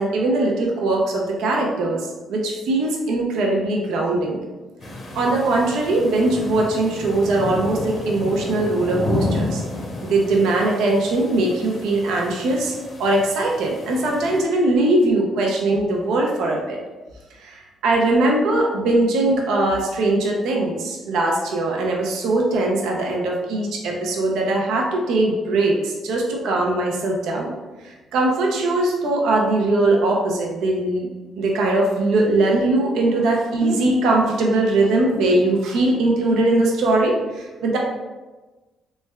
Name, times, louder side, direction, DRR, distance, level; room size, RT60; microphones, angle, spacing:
voice 1, 0.0-4.4 5.1-9.6 10.0-16.8 17.4-27.5 27.8-31.1 31.4-37.8, right 2 dB, 85° right, -1 dB, 0.5 m, -21 dB
sound 1, 4.8-14.4, left 2 dB, 45° left, 0.7 m, -31 dB
3.2 x 3.1 x 2.3 m, 1.2 s
cardioid pair, 90°, 0 cm